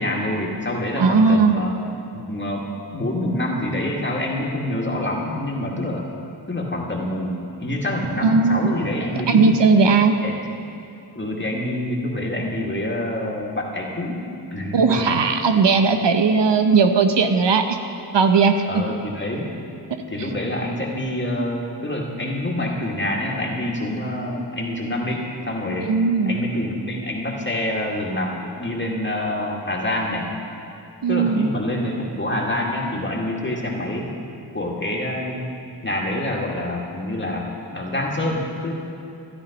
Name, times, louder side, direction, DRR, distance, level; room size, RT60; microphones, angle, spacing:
voice 1, 0.0-1.7 2.1-2.6 2.9-6.1 6.5-9.6 10.2-10.4 11.1-14.2 14.5-15.1 18.7-19.5 20.1-25.9 26.3-30.3 31.1-34.1 34.5-35.5 35.8-38.7, left 1 dB, 25° left, -2 dB, 2.4 m, -26 dB
voice 2, 1.0-1.6 8.2-8.6 9.3-10.1 14.7-17.8 18.1-18.8 25.9-26.4 31.0-31.5, right 4 dB, 75° right, 6 dB, 0.9 m, -17 dB
13.5 x 12.0 x 5.2 m, 2.8 s
wide cardioid pair, 65°, 43 cm